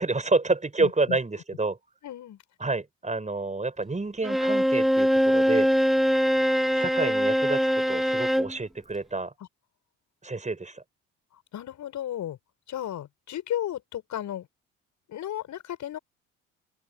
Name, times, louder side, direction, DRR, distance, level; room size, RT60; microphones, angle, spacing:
voice 1, 0.0-1.8 2.6-5.7 6.7-9.3 10.2-10.8, right 3 dB, 20° right, 6.7 m, -28 dB
voice 2, 0.8-1.2 2.0-2.4 11.5-12.4 12.7-14.5 15.1-16.0, left 11 dB, 55° left, 6.8 m, -34 dB
Bowed string instrument, 4.2-8.6, equal, ahead, 2.2 m, -23 dB
open air
figure-of-eight pair, 50°, 35 cm